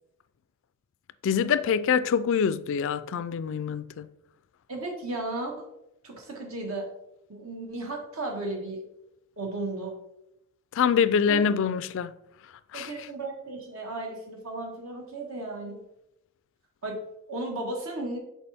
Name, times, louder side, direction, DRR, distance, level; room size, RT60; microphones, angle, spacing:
voice 1, 1.2-4.1 10.7-12.1 12.7-12.9, left 7 dB, 60° left, 0.3 m, -25 dB
voice 2, 4.7-5.7 6.0-6.9 7.3-8.8 9.4-10.0 11.3-11.4 12.7-15.8 16.8-17.0 17.3-18.2, right 2 dB, 70° right, 1.5 m, -34 dB
6.9 x 4.5 x 3.5 m
head